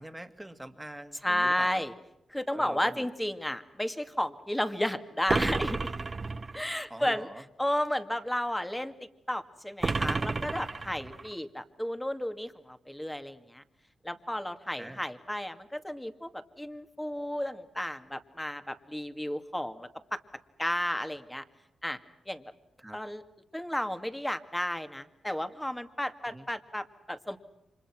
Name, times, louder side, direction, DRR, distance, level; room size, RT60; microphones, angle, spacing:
voice 1, 0.0-1.8 2.5-3.1 6.9-7.4 14.8-15.0 22.8-23.0 26.3-26.5, right 1 dB, 10° right, 8 dB, 2.4 m, -44 dB
voice 2, 1.2-1.9 2.3-5.9 6.5-7.3 7.6-8.9 9.3-13.6 14.0-20.2 20.6-21.4 21.8-22.0 22.3-22.4 22.9-23.2 23.5-27.4, left 1 dB, 10° left, 9 dB, 2.2 m, -33 dB
sound 1, 5.3-6.7 9.8-11.3, right 3 dB, 40° right, 1.3 m, -31 dB
30.0 x 26.0 x 6.1 m, 0.83 s
cardioid pair, 70°, 0 cm